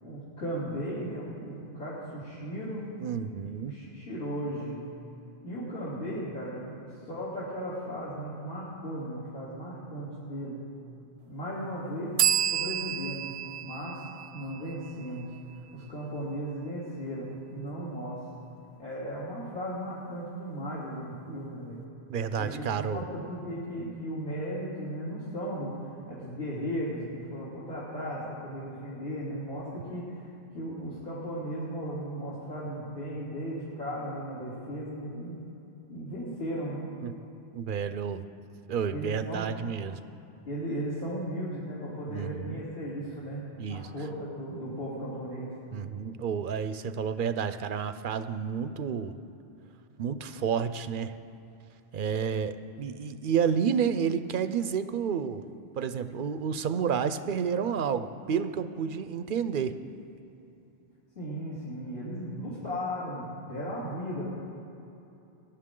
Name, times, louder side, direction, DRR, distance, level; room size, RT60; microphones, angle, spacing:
voice 1, 0.0-2.9 3.4-4.8 5.4-10.6 11.3-12.2 12.5-13.3 13.6-14.0 14.3-15.3 15.7-18.2 18.8-21.8 22.4-25.7 26.1-30.3 30.5-35.4 35.9-36.9 38.9-39.5 40.5-43.4 43.7-45.6 61.1-64.3, equal, 60° left, -10 dB, 3.4 m, -36 dB
voice 2, 3.0-3.7 22.1-23.0 37.0-37.1 37.5-38.2 38.7-40.0 42.1-42.6 43.6-43.9 45.7-49.1 50.0-51.1 51.9-55.4 55.8-59.8, right 7 dB, 60° right, 11 dB, 0.7 m, -30 dB
sound 1, 12.2-15.7, right 10 dB, 85° right, 0.9 m, -30 dB
21.0 x 11.0 x 3.8 m, 2.8 s
omnidirectional pair, 1.1 m